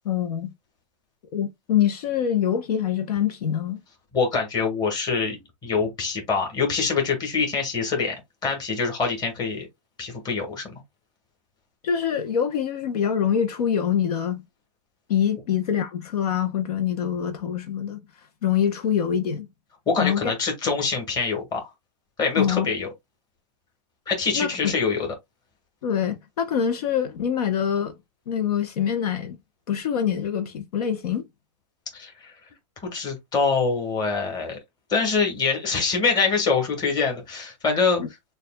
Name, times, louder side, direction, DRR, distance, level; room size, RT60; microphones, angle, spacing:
voice 1, 0.0-0.5 1.3-3.8 11.8-14.4 15.1-18.0 18.4-19.5 20.0-20.3 22.4-22.7 24.3-24.5 25.8-27.9 28.3-29.4 29.7-31.2 38.0-38.1, left 8 dB, 65° left, 0.8 m, -25 dB
voice 2, 4.1-8.1 8.4-9.7 10.0-10.7 19.9-21.7 22.2-22.9 24.1-25.1 31.9-32.3 32.9-34.6 34.9-38.0, left 4 dB, 20° left, 1.5 m, -24 dB
6.5 x 2.4 x 2.2 m
hypercardioid pair, 145°, 21 cm